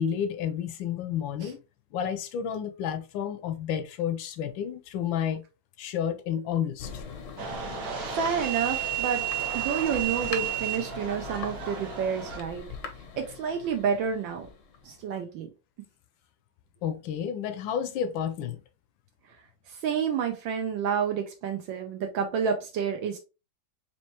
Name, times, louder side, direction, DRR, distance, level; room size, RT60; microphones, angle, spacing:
voice 1, 0.0-1.6 1.9-5.4 5.8-7.0 16.8-18.6, left 8 dB, 75° left, 1.3 m, -30 dB
Thunder, 6.8-15.1, left 5 dB, 60° left, 0.8 m, -42 dB
sound 1, 7.4-12.4, right 10 dB, 55° right, 1.3 m, -32 dB
voice 2, 8.0-9.2 9.5-12.6 13.2-14.5 14.8-15.5 19.7-23.2, right 7 dB, 75° right, 1.4 m, -29 dB
4.3 x 3.0 x 2.9 m
omnidirectional pair, 2.2 m